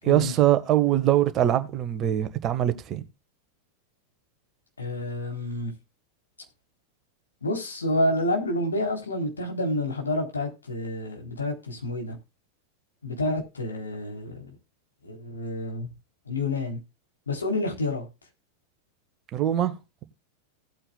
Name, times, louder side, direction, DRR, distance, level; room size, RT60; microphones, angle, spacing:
voice 1, 0.0-3.0 19.3-19.7, right 12 dB, 30° right, 1.5 m, -22 dB
voice 2, 4.8-5.7 7.4-12.2 13.0-14.4 15.0-15.9 16.3-16.8 17.3-18.1, left 1 dB, 75° left, 3.7 m, -29 dB
17.5 x 8.8 x 2.3 m
figure-of-eight pair, 90°, 0 cm